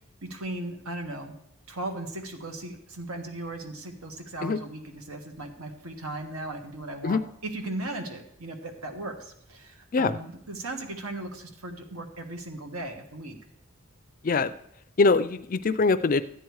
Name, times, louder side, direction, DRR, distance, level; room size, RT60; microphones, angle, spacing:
voice 1, 0.2-1.3 1.7-13.4, right 2 dB, 80° right, 5 dB, 1.7 m, -37 dB
voice 2, 15.0-16.2, left 4 dB, 40° left, 14 dB, 0.4 m, -22 dB
13.0 x 9.1 x 4.8 m, 0.73 s
head